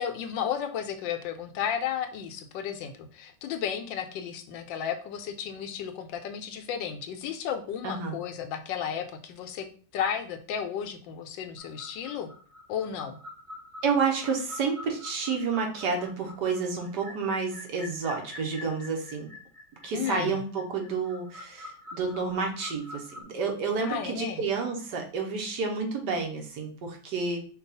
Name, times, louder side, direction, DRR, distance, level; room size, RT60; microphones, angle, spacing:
voice 1, 0.0-9.7 9.9-12.3 12.7-13.2 19.9-20.4 23.8-24.4, left 8 dB, 80° left, 8 dB, 1.3 m, -33 dB
voice 2, 7.8-8.2 13.8-19.3 19.8-27.4, right 5 dB, 65° right, 2 dB, 1.5 m, -30 dB
sound 1, 11.6-23.2, left 2 dB, 25° right, 0.8 m, -46 dB
5.2 x 2.3 x 4.1 m, 0.41 s
omnidirectional pair, 2.1 m